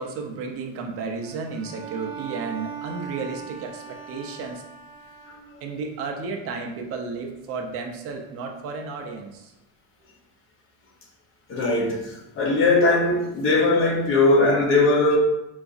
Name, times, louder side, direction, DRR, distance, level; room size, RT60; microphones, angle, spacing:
voice 1, 0.0-4.7 5.6-9.5, right 4 dB, 40° right, 0.4 m, -33 dB
Bowed string instrument, 1.2-5.8, right 7 dB, 65° right, 0.9 m, -39 dB
voice 2, 11.5-15.2, left 2 dB, 35° left, 0.6 m, -20 dB
3.9 x 2.4 x 2.4 m
cardioid pair, 160°, 38 cm